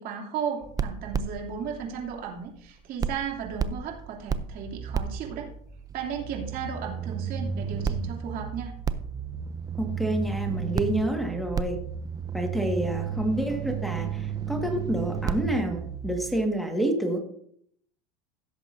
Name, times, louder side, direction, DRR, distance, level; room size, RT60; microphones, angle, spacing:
voice 1, 0.0-5.5 5.9-8.7, right 7 dB, 50° right, 0 dB, 2.9 m, -35 dB
sound 1, 0.6-2.7 3.0-16.5, right 6 dB, 20° right, 0.5 m, -33 dB
voice 2, 9.8-11.8 12.3-17.2, right 1 dB, ahead, 1 dB, 1.8 m, -28 dB
16.0 x 7.3 x 2.7 m, 0.66 s
supercardioid pair, 115°, 19 cm